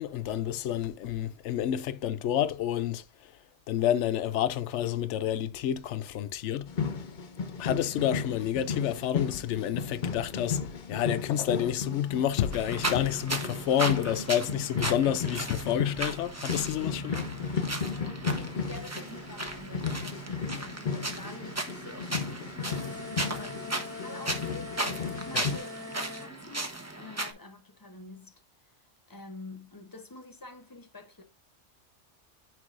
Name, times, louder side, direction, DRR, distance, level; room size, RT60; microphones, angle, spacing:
voice 1, 0.0-3.0 3.7-6.7 7.6-17.6 25.3-25.4, left 10 dB, 75° left, 0.9 m, -29 dB
sound 1, 6.7-25.6, left 5 dB, 45° left, 0.8 m, -35 dB
sound 2, 12.5-27.3, right 2 dB, 15° right, 0.8 m, -36 dB
voice 2, 18.2-28.8 29.1-31.2, left 3 dB, 20° left, 0.9 m, -47 dB
sound 3, 22.6-26.3, left 3 dB, 5° left, 2.5 m, -42 dB
9.6 x 4.7 x 2.5 m
omnidirectional pair, 1.2 m